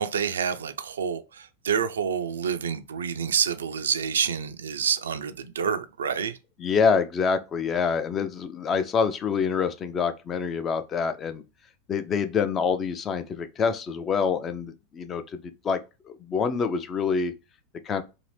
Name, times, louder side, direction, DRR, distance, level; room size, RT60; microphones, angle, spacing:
voice 1, 0.0-6.4, right 7 dB, 65° right, 0.3 m, -28 dB
voice 2, 6.6-11.4 11.9-15.8 16.0-17.3 17.8-18.0, left 6 dB, 25° left, 0.4 m, -26 dB
2.8 x 2.5 x 3.2 m
figure-of-eight pair, 90°, 0 cm